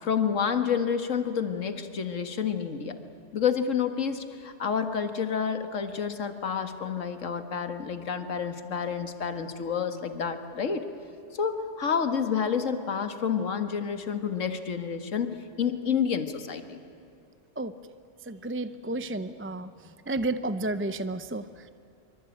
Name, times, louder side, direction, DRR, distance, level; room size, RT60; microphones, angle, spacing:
voice 1, 0.0-3.0 3.3-10.8 11.3-16.8, left 7 dB, 80° left, 8 dB, 1.9 m, -29 dB
voice 2, 18.3-19.7 20.1-21.7, right 2 dB, 15° right, 12 dB, 0.5 m, -31 dB
25.0 x 25.0 x 9.2 m, 2.8 s
omnidirectional pair, 1.3 m